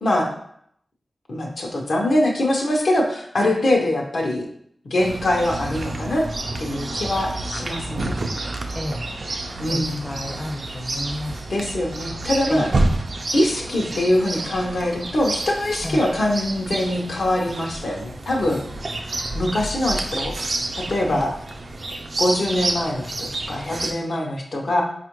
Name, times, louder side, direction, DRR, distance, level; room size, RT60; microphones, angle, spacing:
voice 1, 0.0-0.3 1.3-4.5 4.8-6.3 6.6-8.2 9.6-10.0 11.5-12.7 13.3-18.6 19.3-20.3 20.8-21.3 22.2-24.8, left 1 dB, 80° left, 0 dB, 0.7 m, -23 dB
Chirp tweet, 5.0-23.9, right 2 dB, 60° right, 0.4 m, -29 dB
voice 2, 8.7-9.1 9.7-11.5 12.5-12.7 15.8-16.0 21.1-21.3, left 1 dB, 25° left, 2 dB, 0.5 m, -31 dB
4.3 x 2.4 x 2.9 m, 0.69 s
wide cardioid pair, 75°, 0 cm